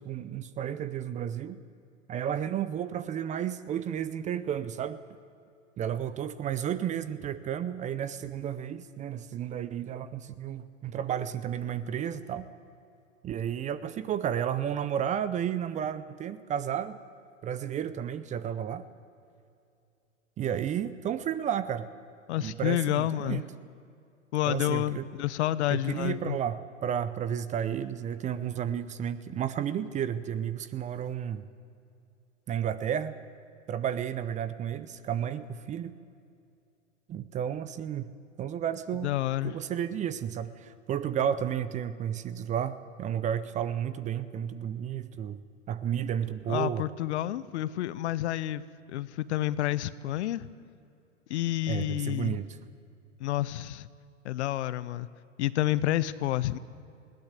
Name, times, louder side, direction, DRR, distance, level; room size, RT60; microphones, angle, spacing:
voice 1, 0.0-1.6 2.1-5.0 5.8-12.5 13.2-17.0 17.4-18.9 20.4-21.9 22.4-23.5 24.5-25.1 25.7-31.4 32.5-33.1 33.7-36.0 37.1-38.1 38.4-39.1 39.4-45.4 45.7-46.9 51.7-52.5, right 9 dB, 20° right, 0.6 m, -32 dB
voice 2, 22.3-23.4 24.3-26.4 39.0-39.5 46.5-48.6 48.9-50.5 51.3-52.4 53.2-53.9 54.2-55.1 55.4-56.6, left 14 dB, 60° left, 0.9 m, -29 dB
20.5 x 17.0 x 8.2 m
hypercardioid pair, 115°, 39 cm